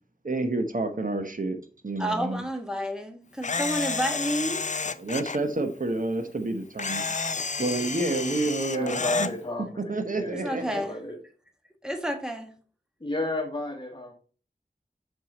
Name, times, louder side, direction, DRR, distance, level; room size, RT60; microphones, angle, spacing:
voice 1, 0.2-1.6 1.8-2.4 5.0-7.0 7.6-9.3 9.9-10.8, right 2 dB, 60° right, 5 dB, 1.0 m, -29 dB
voice 2, 2.0-4.7 8.8-9.1 10.3-11.0 11.8-12.5, equal, 5° right, 4 dB, 1.5 m, -30 dB
Camera, 3.4-5.4 6.8-9.3, left 4 dB, 50° left, 0.5 m, -30 dB
voice 3, 8.6-11.2 13.0-14.1, left 2 dB, 30° left, 0 dB, 1.4 m, -32 dB
5.9 x 5.6 x 4.2 m, 0.39 s
wide cardioid pair, 60°, 16 cm